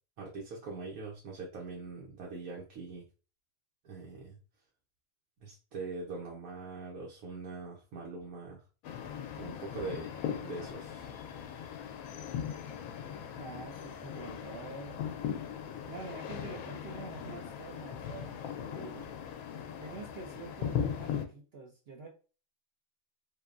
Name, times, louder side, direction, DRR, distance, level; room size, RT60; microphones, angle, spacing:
voice 1, 0.2-3.1 3.8-4.4 5.4-8.6 9.4-10.1 10.4-11.1, right 3 dB, 85° right, -3 dB, 1.2 m, -42 dB
sound 1, 8.8-21.2, left 8 dB, 90° left, 1.0 m, -39 dB
voice 2, 13.4-15.3 15.9-19.1 19.8-22.1, right 3 dB, 55° right, 0 dB, 0.7 m, -46 dB
3.4 x 2.9 x 2.4 m, 0.35 s
omnidirectional pair, 1.5 m